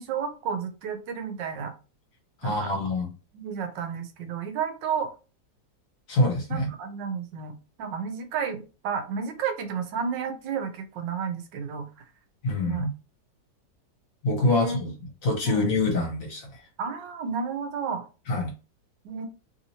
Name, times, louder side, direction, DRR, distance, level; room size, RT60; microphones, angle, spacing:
voice 1, 0.0-1.7 2.4-2.7 3.3-5.1 6.5-11.9 12.6-12.9 14.4-14.8 15.4-15.7 16.8-18.0 19.0-19.3, right 6 dB, 90° right, 8 dB, 1.4 m, -32 dB
voice 2, 2.4-3.1 6.1-6.7 12.4-12.9 14.2-14.9 15.2-16.5 18.3-18.5, left 2 dB, 55° left, 0 dB, 1.4 m, -25 dB
3.3 x 2.8 x 2.8 m, 0.32 s
omnidirectional pair, 1.9 m